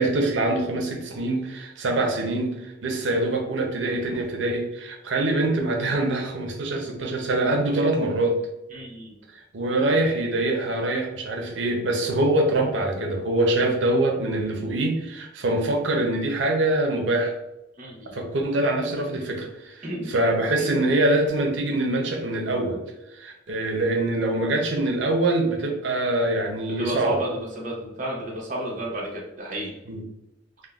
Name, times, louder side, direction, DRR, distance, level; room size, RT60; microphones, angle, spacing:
voice 1, 0.0-2.5 2.8-8.4 9.5-17.3 18.1-19.8 20.1-22.8 23.2-27.1 29.9-30.0, right 2 dB, 80° right, 1 dB, 0.6 m, -24 dB
voice 2, 8.7-9.2 13.6-13.7 17.8-18.2 19.8-20.2 20.6-20.8 26.8-29.7, right 1 dB, 45° right, -3 dB, 0.9 m, -31 dB
3.6 x 2.1 x 2.3 m, 0.91 s
head